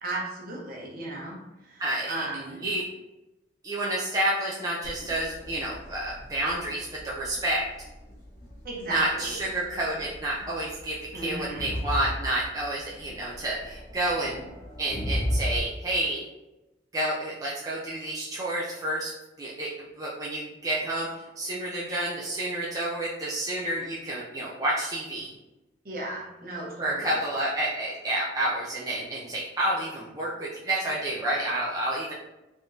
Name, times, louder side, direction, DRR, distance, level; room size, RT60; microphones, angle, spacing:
voice 1, 0.0-1.4 1.6-2.6 8.6-9.5 11.1-11.7 25.8-27.2, right 2 dB, 55° right, -3 dB, 1.0 m, -35 dB
voice 2, 1.8-2.1 2.6-2.8 3.6-7.7 8.9-14.4 14.8-16.2 16.9-19.7 20.0-21.1 21.4-25.3 26.8-32.1, right 1 dB, 20° right, -6 dB, 0.5 m, -29 dB
Crowd, 4.8-15.6, equal, 45° left, 1.1 m, -37 dB
3.6 x 3.4 x 2.7 m, 1.0 s
head